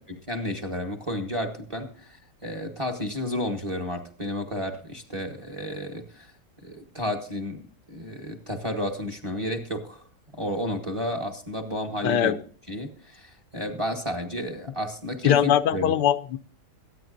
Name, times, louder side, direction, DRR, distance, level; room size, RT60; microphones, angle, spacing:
voice 1, 0.1-2.2 2.4-6.3 6.6-7.6 7.9-10.0 10.3-12.3 12.7-15.9, equal, 20° right, 1.2 m, -32 dB
voice 2, 12.0-12.4 15.2-16.4, left 10 dB, 80° left, 1.3 m, -21 dB
22.5 x 9.2 x 2.6 m
omnidirectional pair, 1.8 m